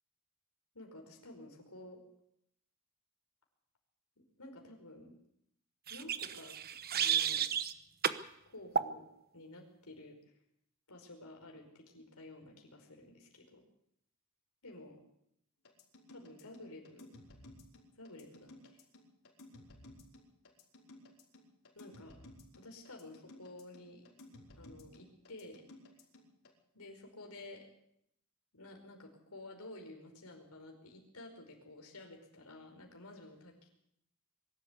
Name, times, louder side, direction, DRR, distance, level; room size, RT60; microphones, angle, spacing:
voice 1, 0.7-2.0 4.2-5.2 5.9-6.6 6.9-7.5 8.4-9.0 9.3-10.2 10.9-13.6 14.6-15.0 16.1-17.1 18.0-18.8 21.7-22.2 22.6-24.1 24.6-25.6 26.7-27.7 28.5-33.7, left 2 dB, 80° left, 2 dB, 5.2 m, -52 dB
sound 1, 5.9-7.7 8.0-8.2 8.7-8.9, right 8 dB, 45° right, 1.1 m, -32 dB
sound 2, 15.7-26.5, left 1 dB, 65° left, 5.5 m, -56 dB
23.5 x 13.0 x 8.4 m, 0.74 s
head